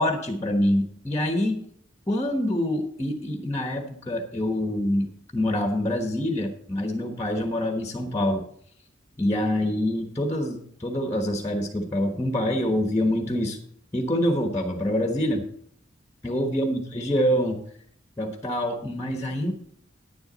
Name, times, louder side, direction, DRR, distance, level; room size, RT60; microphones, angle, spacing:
voice 1, 0.0-1.6 2.1-8.5 9.2-13.6 13.9-15.5 16.2-17.6 18.2-19.5, left 1 dB, 15° left, 3 dB, 1.1 m, -26 dB
10.5 x 10.0 x 4.0 m, 0.66 s
head